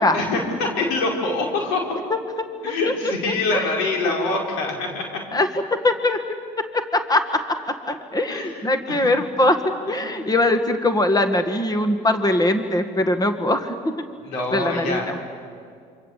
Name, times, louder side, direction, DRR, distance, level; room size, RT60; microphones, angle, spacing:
voice 1, 0.1-1.8 2.6-5.0 8.3-9.1 9.9-10.3 14.2-15.1, left 3 dB, 90° left, 1 dB, 5.3 m, -25 dB
voice 2, 5.3-6.2 6.7-7.4 7.9-9.6 9.9-13.7 14.5-15.2, left 1 dB, 20° left, 8 dB, 1.9 m, -21 dB
27.5 x 25.0 x 8.3 m, 2.3 s
supercardioid pair, 75°, 19 cm